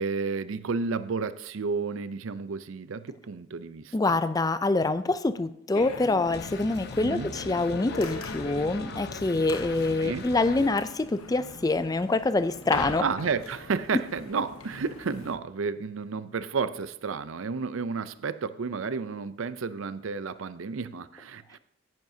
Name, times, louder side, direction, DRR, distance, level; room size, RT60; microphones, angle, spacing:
voice 1, 0.0-4.2 7.0-7.3 10.0-10.3 13.0-21.6, right 5 dB, 70° right, 0.5 m, -31 dB
voice 2, 3.9-13.0, left 2 dB, 15° left, 0.3 m, -26 dB
sound 1, 5.7-15.4, left 3 dB, 85° left, 1.0 m, -40 dB
sound 2, 6.3-10.7, left 4 dB, 50° left, 0.7 m, -41 dB
14.0 x 10.5 x 2.7 m
head